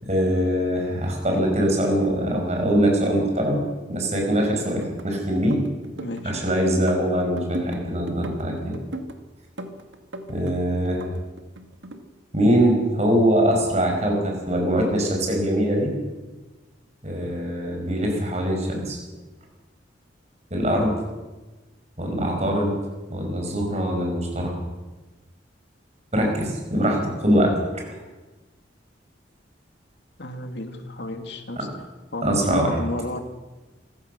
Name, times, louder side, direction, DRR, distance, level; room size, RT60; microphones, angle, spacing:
voice 1, 0.0-3.6 3.9-5.6 6.2-8.8 10.3-11.1 12.3-15.9 17.0-19.0 20.5-20.9 22.0-22.7 23.1-24.6 26.1-27.8 31.6-31.7 32.2-32.8, equal, 35° right, 1 dB, 5.7 m, -22 dB
sound 1, 4.5-5.1 5.4-6.4 6.7-7.8 8.1-9.2 9.6-10.6 10.8-12.0, right 1 dB, 90° right, 2.0 m, -37 dB
voice 2, 6.0-6.3 30.2-31.7 32.1-33.2, left 1 dB, 70° left, 6 dB, 2.2 m, -32 dB
25.0 x 15.5 x 6.7 m, 1.2 s
head